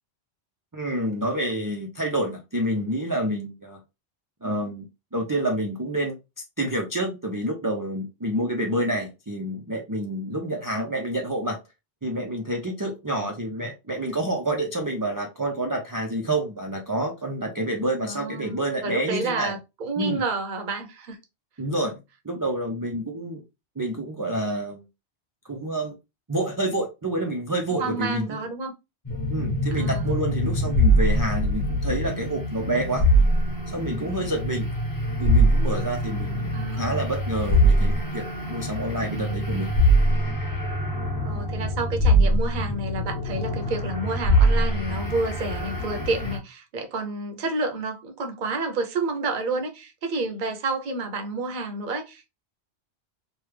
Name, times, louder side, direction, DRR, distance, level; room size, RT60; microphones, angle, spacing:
voice 1, 0.7-3.8 4.4-4.9 5.1-11.6 12.0-19.6 20.0-20.2 21.6-23.4 23.8-24.8 25.4-26.0 26.3-28.4 29.3-33.1 33.7-34.7 35.2-39.7, right 1 dB, 30° right, 0.4 m, -28 dB
voice 2, 18.0-21.2 27.7-28.7 29.7-30.1 36.5-37.1 39.0-39.4 41.2-52.3, right 3 dB, 50° right, 0.8 m, -30 dB
sound 1, 29.0-46.4, equal, 35° left, 1.3 m, -23 dB
3.3 x 2.2 x 3.2 m
omnidirectional pair, 1.1 m